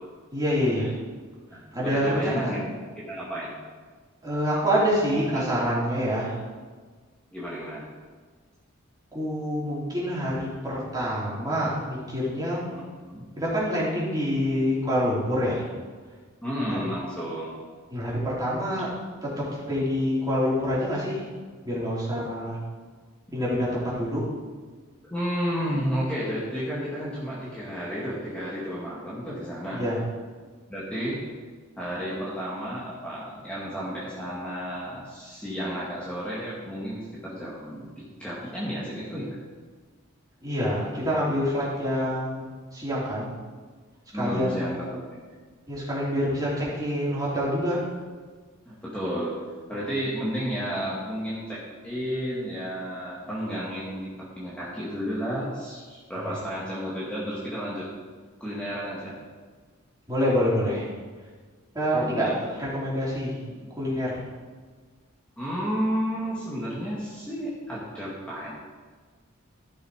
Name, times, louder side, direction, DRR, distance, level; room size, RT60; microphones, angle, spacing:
voice 1, 0.3-0.9 1.7-2.5 4.2-6.3 9.1-12.6 13.4-15.6 16.7-16.9 17.9-18.9 19.2-21.2 21.6-22.6 23.3-24.3 29.7-30.0 40.4-42.5 42.7-43.3 44.1-44.7 45.7-47.8 56.3-56.4 60.1-60.9 61.7-63.3 63.7-64.2, equal, 20° right, -8 dB, 3.6 m, -26 dB
voice 2, 1.5-2.6 3.0-3.6 5.1-5.4 7.3-7.8 12.7-13.2 16.4-17.6 25.1-29.8 30.7-31.2 31.8-37.9 38.2-39.3 44.1-45.4 48.7-49.4 49.7-57.9 58.4-59.1 62.2-62.3 63.5-63.7 65.4-68.5, equal, 5° left, -8 dB, 1.8 m, -32 dB
14.5 x 6.3 x 4.9 m, 1.5 s
head